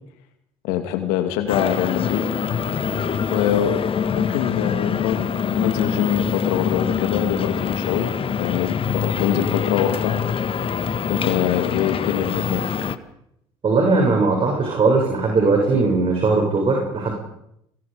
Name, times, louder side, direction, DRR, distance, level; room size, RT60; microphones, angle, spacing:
voice 1, 0.6-2.2 3.3-3.8 4.1-5.2 5.5-8.1 8.4-10.2 11.1-12.7, left 10 dB, 75° left, 6 dB, 2.6 m, -24 dB
sound 1, 1.5-13.0, left 7 dB, 40° left, 1.7 m, -24 dB
voice 2, 13.6-17.1, right 3 dB, 40° right, 1 dB, 7.2 m, -19 dB
29.5 x 22.0 x 5.3 m, 0.77 s
hypercardioid pair, 70°, 14 cm